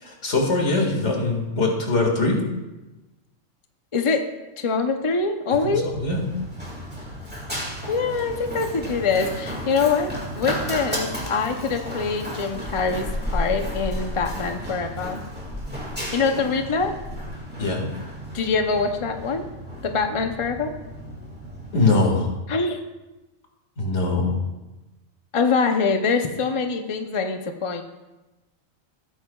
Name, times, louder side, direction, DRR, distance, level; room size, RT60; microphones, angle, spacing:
voice 1, 0.0-2.4 5.6-6.2 17.6-17.8 21.7-22.3 23.8-24.4, left 3 dB, 55° left, 1 dB, 2.2 m, -22 dB
voice 2, 3.9-4.2 4.6-5.9 7.9-13.1 13.3-15.2 16.1-16.9 18.3-19.4 19.8-20.7 22.5-22.8 25.3-27.8, left 4 dB, 35° left, 5 dB, 0.5 m, -24 dB
Run, 5.9-22.0, equal, 5° right, 2.1 m, -33 dB
17.5 x 9.1 x 2.3 m, 1.1 s
omnidirectional pair, 1.4 m